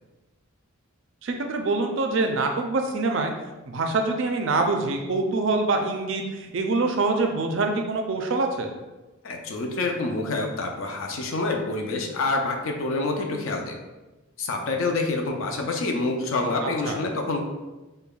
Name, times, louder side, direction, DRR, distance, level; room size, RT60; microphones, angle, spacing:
voice 1, 1.2-3.3 3.7-8.7 16.6-17.0, right 3 dB, 55° right, 4 dB, 0.4 m, -25 dB
voice 2, 9.2-13.8 14.4-17.5, left 3 dB, 60° left, 2 dB, 0.5 m, -27 dB
5.2 x 2.2 x 2.3 m, 1.1 s
head